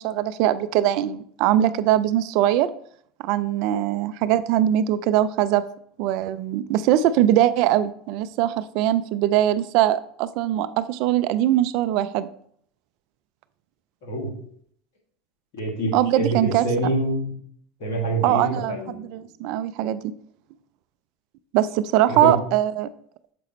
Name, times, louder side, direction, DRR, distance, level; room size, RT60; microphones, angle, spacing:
voice 1, 0.0-2.7 3.2-5.6 6.0-12.3 15.9-16.6 18.2-20.0 21.5-22.9, right 12 dB, 60° right, 14 dB, 0.3 m, -21 dB
voice 2, 15.5-17.3 17.8-18.9 22.1-22.3, right 1 dB, 70° left, -1 dB, 2.2 m, -26 dB
6.8 x 4.9 x 3.1 m, 0.63 s
hypercardioid pair, 85°, 0 cm